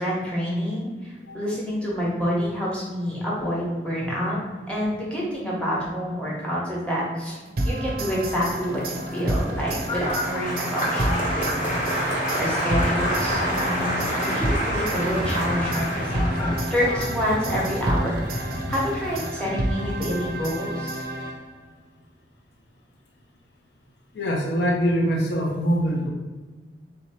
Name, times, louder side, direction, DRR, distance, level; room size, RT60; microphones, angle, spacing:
voice 1, 0.0-4.4 4.7-21.0, equal, 5° left, -6 dB, 1.1 m, -28 dB
sound 1, 7.6-21.7, right 1 dB, 55° right, 0.5 m, -30 dB
sound 2, 8.1-19.3, left 1 dB, 25° left, 0.3 m, -35 dB
Applause, 9.0-19.4 19.7-20.3, equal, 40° left, 1.2 m, -29 dB
voice 2, 24.1-26.1, equal, 75° left, -1 dB, 0.7 m, -23 dB
3.5 x 2.9 x 4.3 m, 1.4 s
head